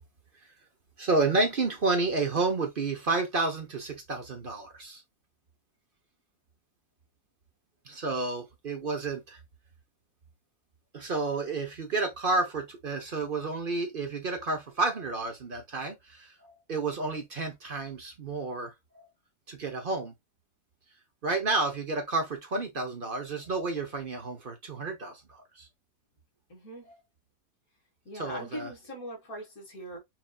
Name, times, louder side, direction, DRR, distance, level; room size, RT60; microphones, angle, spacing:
voice 1, 1.0-5.0 7.9-9.4 10.9-18.7 19.5-20.1 21.2-25.7 28.2-28.7, right 3 dB, 40° right, 0.9 m, -30 dB
voice 2, 26.5-26.9 28.1-30.0, equal, 55° left, 2.3 m, -41 dB
5.9 x 2.7 x 2.4 m
omnidirectional pair, 1.8 m